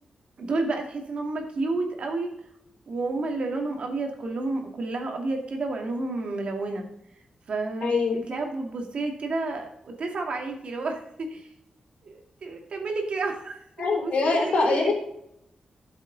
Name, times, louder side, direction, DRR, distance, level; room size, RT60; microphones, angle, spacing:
voice 1, 0.4-2.3 2.9-6.8 7.5-11.5 12.0-14.9, right 3 dB, 60° right, 2 dB, 2.4 m, -30 dB
voice 2, 7.8-8.2 13.8-14.9, left 4 dB, 70° left, 1 dB, 3.7 m, -23 dB
12.5 x 7.4 x 4.0 m, 0.76 s
wide cardioid pair, 115°, 2 cm